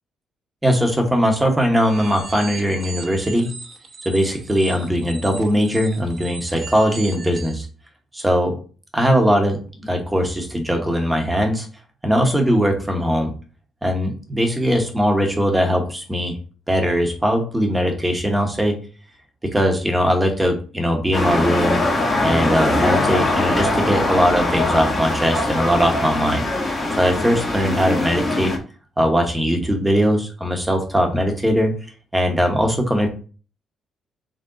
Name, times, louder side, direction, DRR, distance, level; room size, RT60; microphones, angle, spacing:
voice 1, 0.6-3.5 4.0-7.7 8.1-8.6 8.9-11.7 12.0-13.3 13.8-16.4 16.7-18.8 19.4-21.8 22.2-28.6 29.0-31.7 32.1-33.1, equal, 10° right, 3 dB, 1.1 m, -20 dB
sound 1, 1.8-7.6, right 5 dB, 45° right, 1.0 m, -37 dB
sound 2, 21.1-28.6, left 2 dB, 30° left, 1.3 m, -22 dB
3.8 x 3.5 x 3.8 m, 0.38 s
cardioid pair, 90°, 0 cm